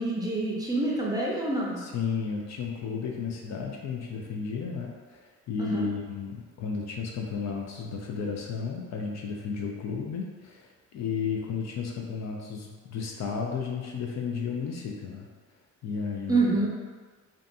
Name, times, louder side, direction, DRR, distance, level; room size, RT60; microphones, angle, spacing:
voice 1, 0.0-1.8 5.6-5.9 16.3-16.7, right 2 dB, 15° right, -4 dB, 0.5 m, -27 dB
voice 2, 1.8-15.3 15.8-16.4, left 5 dB, 65° left, 0 dB, 0.5 m, -33 dB
2.6 x 2.3 x 2.6 m, 1.5 s
cardioid pair, 90°, 30 cm